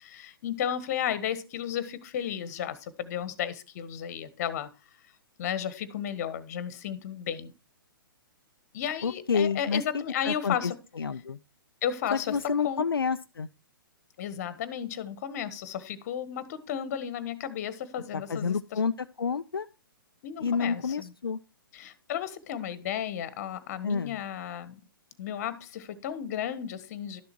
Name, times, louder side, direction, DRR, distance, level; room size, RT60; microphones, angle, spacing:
voice 1, 0.0-4.7 5.4-7.5 8.7-10.8 11.8-12.9 14.2-18.8 20.2-21.1 21.7-24.8 25.2-27.2, left 9 dB, 40° left, 1.4 m, -33 dB
voice 2, 9.0-11.4 12.1-13.5 18.1-19.7 20.4-21.4 23.8-24.2, left 5 dB, 75° left, 0.5 m, -29 dB
12.0 x 6.9 x 4.5 m
figure-of-eight pair, 120°, 12 cm